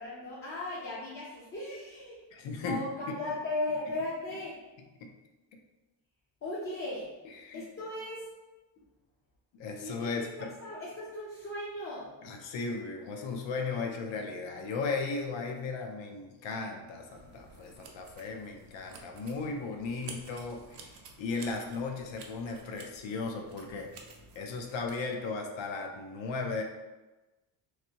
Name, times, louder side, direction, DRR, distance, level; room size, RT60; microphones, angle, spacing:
voice 1, 0.0-2.2 2.6-4.6 6.4-7.1 7.5-8.2 9.8-12.1, left 2 dB, 30° left, -7 dB, 0.5 m, -37 dB
voice 2, 2.3-2.8 3.1-3.2 5.0-5.1 7.4-7.6 9.5-10.5 12.2-23.9 24.4-26.6, left 4 dB, 70° left, 3 dB, 0.6 m, -36 dB
sound 1, 17.1-25.0, right 4 dB, 65° right, 0.5 m, -51 dB
3.2 x 2.6 x 2.8 m, 1.1 s
cardioid pair, 165°, 47 cm